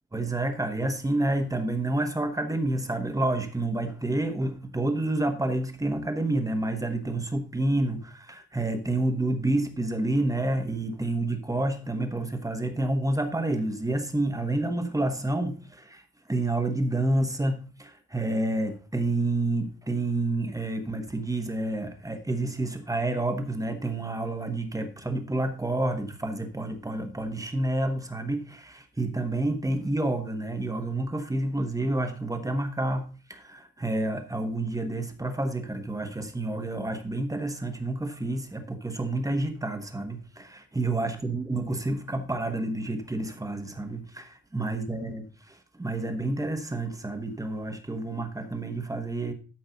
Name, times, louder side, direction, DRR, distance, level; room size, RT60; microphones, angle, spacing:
voice 1, 0.1-16.0 16.3-49.3, right 2 dB, 10° right, 1.2 m, -29 dB
13.0 x 5.3 x 4.0 m
cardioid pair, 145°, 36 cm